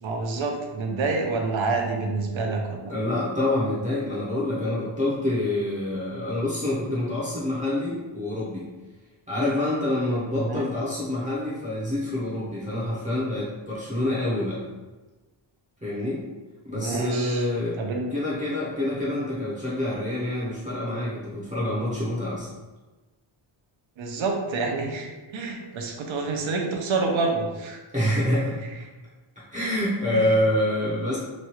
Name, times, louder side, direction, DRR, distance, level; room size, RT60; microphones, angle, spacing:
voice 1, 0.0-2.9 10.4-10.6 16.7-17.5 17.8-18.1 24.0-27.8 30.1-30.2, right 3 dB, 70° right, 2 dB, 0.6 m, -28 dB
voice 2, 2.9-8.7 9.3-14.6 15.8-16.2 16.6-17.8 18.1-22.5 27.9-28.6 29.4-31.2, left 1 dB, 15° right, -9 dB, 0.6 m, -26 dB
3.1 x 2.3 x 2.9 m, 1.2 s
wide cardioid pair, 175°, 48 cm